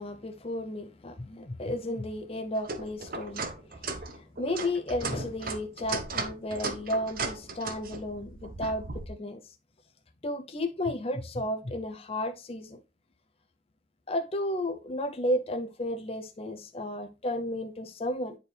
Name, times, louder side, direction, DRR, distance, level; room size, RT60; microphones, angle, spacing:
voice 1, 0.0-9.5 10.2-12.8 14.1-18.4, left 1 dB, 30° left, 0.6 m, -33 dB
sound 1, 2.6-9.1, right 3 dB, 50° right, 1.0 m, -36 dB
9.6 x 4.5 x 3.3 m
head